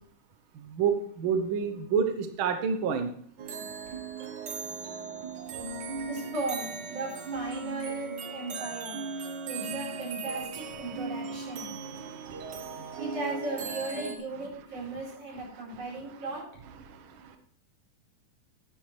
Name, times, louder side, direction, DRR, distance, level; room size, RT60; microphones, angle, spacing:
voice 1, 0.5-3.1 10.8-11.0 11.4-13.1 14.9-15.0 15.5-16.2 16.8-17.4, right 6 dB, 70° right, 7 dB, 1.2 m, -31 dB
sound 1, 3.4-14.2, right 4 dB, 90° right, 0.9 m, -38 dB
voice 2, 6.0-9.0 9.5-11.7 13.0-16.4, right 2 dB, 50° right, -3 dB, 5.3 m, -36 dB
11.5 x 10.0 x 3.2 m, 0.63 s
omnidirectional pair, 3.6 m